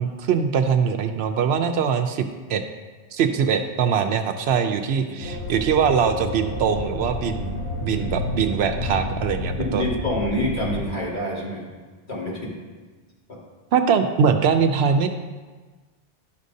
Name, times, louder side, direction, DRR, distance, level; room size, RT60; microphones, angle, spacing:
voice 1, 0.0-2.2 2.5-2.6 3.1-9.9 13.7-15.1, right 6 dB, 75° right, 7 dB, 0.8 m, -22 dB
sound 1, 5.2-10.9, left 2 dB, 80° left, 1.2 m, -30 dB
voice 2, 9.4-11.7 12.1-12.5, left 1 dB, 45° left, -6 dB, 2.1 m, -27 dB
11.5 x 6.3 x 2.7 m, 1.3 s
omnidirectional pair, 1.1 m